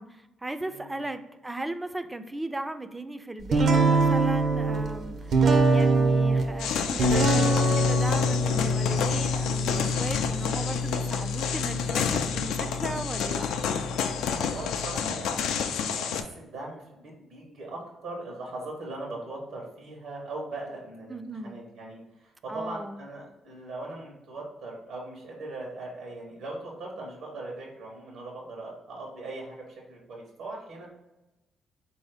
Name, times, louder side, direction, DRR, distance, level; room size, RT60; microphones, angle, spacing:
voice 1, 0.0-13.5 21.1-21.6 22.5-23.0, right 2 dB, 15° right, 10 dB, 0.3 m, -36 dB
voice 2, 0.6-1.0 14.3-30.9, right 2 dB, 85° right, -3 dB, 1.0 m, -40 dB
sound 1, 3.5-15.0, right 1 dB, 60° right, 0.5 m, -25 dB
sound 2, 6.6-16.2, left 7 dB, 85° left, 0.3 m, -30 dB
3.8 x 2.7 x 3.4 m, 1.0 s
cardioid pair, 90°, 0 cm